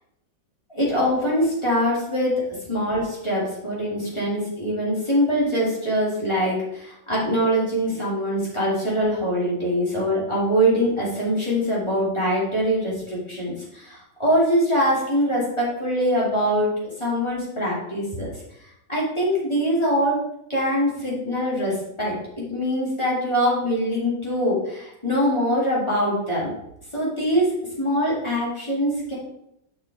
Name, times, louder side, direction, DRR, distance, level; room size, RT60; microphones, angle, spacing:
voice 1, 0.7-2.4 2.7-18.4 18.9-20.2 20.5-26.5 26.9-27.5 27.8-29.2, equal, 15° left, -7 dB, 2.6 m, -23 dB
7.0 x 6.0 x 3.7 m, 0.77 s
omnidirectional pair, 1.8 m